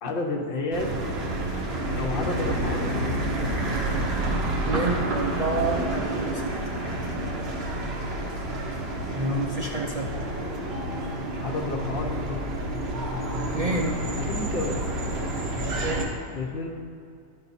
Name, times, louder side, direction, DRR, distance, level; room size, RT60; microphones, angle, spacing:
voice 1, 0.0-1.2 1.9-3.2 11.4-12.5 14.2-14.8 16.3-16.7, left 3 dB, 55° left, 1 dB, 1.0 m, -31 dB
sound 1, 0.7-16.1, right 1 dB, 65° right, 1.3 m, -29 dB
voice 2, 4.7-6.5 9.1-10.1 13.4-14.0 15.8-16.2, right 2 dB, 45° right, -1 dB, 0.6 m, -28 dB
12.0 x 5.6 x 4.1 m, 2.4 s
omnidirectional pair, 1.1 m